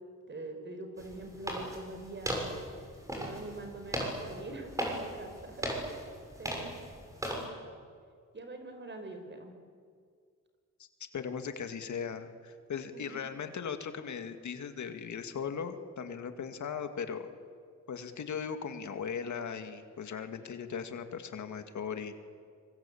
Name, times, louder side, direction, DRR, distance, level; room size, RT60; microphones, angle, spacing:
voice 1, 0.3-2.5 3.1-6.0 6.4-6.8 7.2-7.5 8.3-9.5 12.9-13.2, right 2 dB, 40° right, 6 dB, 4.9 m, -44 dB
sound 1, 1.0-7.5, equal, 10° right, 6.9 m, -38 dB
voice 2, 11.1-17.3 17.9-22.1, left 6 dB, 75° left, 7 dB, 2.2 m, -38 dB
26.0 x 24.5 x 8.7 m, 2.1 s
wide cardioid pair, 115°, 29 cm